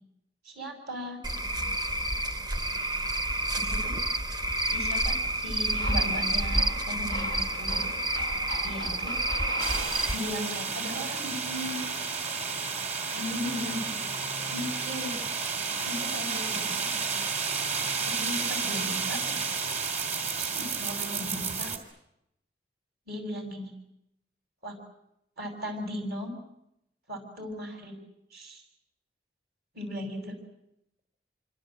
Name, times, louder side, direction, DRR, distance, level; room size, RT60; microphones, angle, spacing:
voice 1, 0.4-1.2 2.8-2.9 3.5-3.9 4.6-7.8 8.6-9.2 10.1-12.2 13.1-14.0 14.5-15.2 15.8-17.3 18.0-19.5 20.4-21.7 23.1-23.7 24.6-24.8 25.4-26.3 27.1-28.0 28.3-28.6 29.7-30.4, left 1 dB, 60° right, 5 dB, 6.9 m, -37 dB
Cricket / Frog, 1.2-10.1, right 1 dB, 25° right, 0.9 m, -29 dB
sound 1, 5.7-10.5, right 1 dB, 85° right, 5.5 m, -41 dB
sound 2, 9.6-21.8, right 5 dB, 40° right, 3.3 m, -31 dB
27.0 x 25.5 x 7.7 m, 0.82 s
head